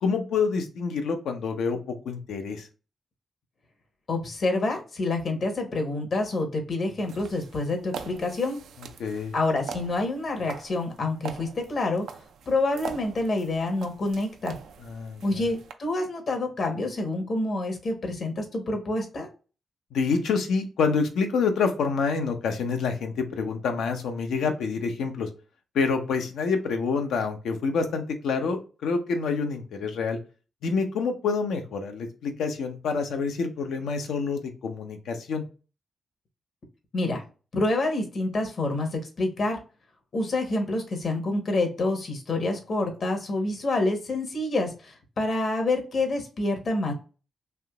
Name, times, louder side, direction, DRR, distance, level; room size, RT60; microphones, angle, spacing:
voice 1, 0.0-2.7 9.0-9.3 14.8-15.5 19.9-25.3 25.7-30.2 30.6-35.4, left 5 dB, 85° left, 5 dB, 0.6 m, -27 dB
voice 2, 4.1-8.6 9.3-12.1 12.5-14.6 15.2-19.3 36.9-37.2 37.5-39.6 40.1-46.9, left 2 dB, 60° left, 4 dB, 1.1 m, -27 dB
sound 1, 7.0-15.7, right 7 dB, 85° right, 0.3 m, -42 dB
3.4 x 2.8 x 2.3 m, 0.34 s
cardioid pair, 55°, 0 cm